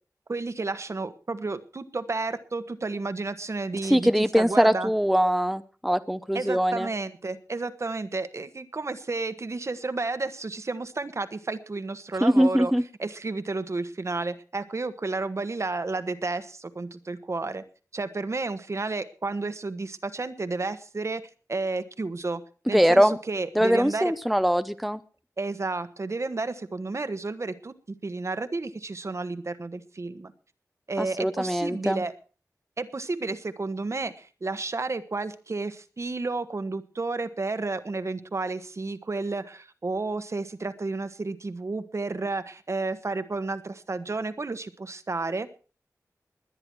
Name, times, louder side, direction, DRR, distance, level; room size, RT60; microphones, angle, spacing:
voice 1, 0.3-4.9 6.3-12.7 13.0-17.6 17.9-22.4 22.7-24.1 25.4-30.3 30.9-32.1 32.8-45.6, right 3 dB, 50° right, 11 dB, 1.3 m, -31 dB
voice 2, 3.8-6.9 12.2-12.8 22.7-23.2 23.6-25.0 31.0-32.0, equal, ahead, 11 dB, 0.7 m, -22 dB
20.5 x 10.0 x 4.7 m, 0.38 s
wide cardioid pair, 85°, 6 cm